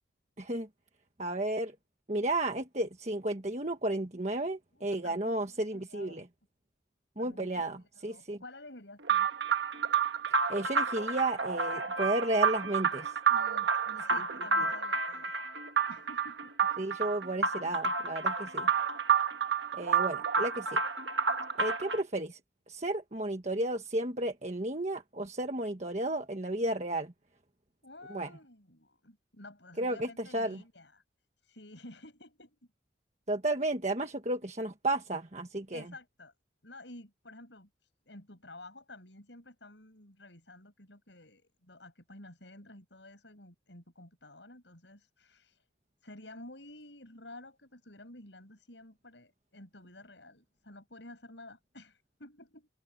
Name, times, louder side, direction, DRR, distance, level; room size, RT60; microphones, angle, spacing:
voice 1, 0.4-0.7 1.2-1.7 2.1-6.3 7.2-8.4 10.5-13.2 14.6-14.7 16.8-18.7 19.7-20.8 21.6-22.4 22.7-27.1 28.1-28.3 29.8-30.6 33.3-35.9, right 1 dB, 40° right, 1.5 m, -33 dB
voice 2, 4.7-6.3 7.2-9.3 13.3-15.5 15.9-16.5 27.8-31.0 31.4-32.6 35.7-36.3 36.6-45.7 46.0-52.7, left 2 dB, 75° left, 6.8 m, -52 dB
sound 1, 9.0-22.0, right 5 dB, 70° right, 1.4 m, -30 dB
head